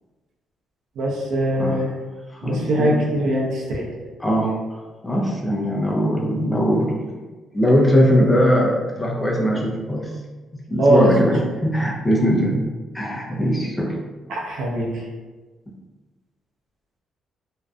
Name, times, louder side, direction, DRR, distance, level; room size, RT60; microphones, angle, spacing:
voice 1, 1.0-1.9 2.4-3.9 10.8-11.3 14.3-15.0, right 1 dB, 80° right, -3 dB, 0.6 m, -21 dB
voice 2, 2.3-3.0 4.2-4.5 5.0-7.1 7.5-10.1 10.5-12.6 12.9-13.9, equal, 15° left, -2 dB, 0.5 m, -20 dB
2.6 x 2.1 x 2.4 m, 1.3 s
cardioid pair, 90°, 0 cm